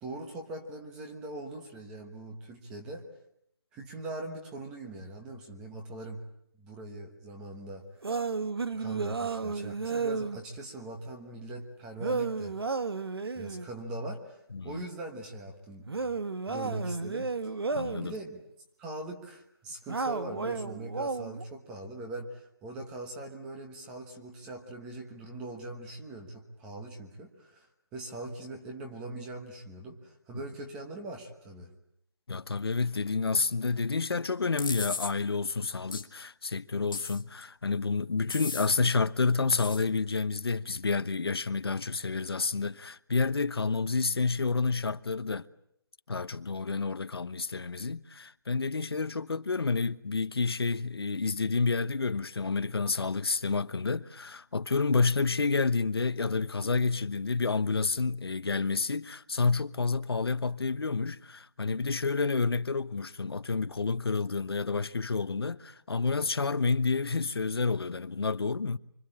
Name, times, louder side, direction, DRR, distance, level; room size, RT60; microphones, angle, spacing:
voice 1, 0.0-3.1 3.7-6.2 6.5-7.8 8.8-12.6 13.3-14.4 14.6-16.2 16.5-17.5 18.0-18.4 18.8-27.7 27.9-31.7, right 2 dB, 5° right, 1.2 m, -41 dB
sound 1, 8.0-10.4 12.0-13.7 15.9-18.1 19.9-21.4, right 4 dB, 90° right, 1.5 m, -32 dB
voice 2, 14.5-14.9 17.7-18.1 32.3-45.5 46.1-68.8, left 4 dB, 90° left, 1.1 m, -29 dB
sound 2, 34.6-35.1 35.9-36.0 36.9-37.4 38.3-38.7 39.6-39.8, left 4 dB, 65° left, 2.0 m, -36 dB
26.0 x 25.0 x 8.7 m
hypercardioid pair, 175°, 12 cm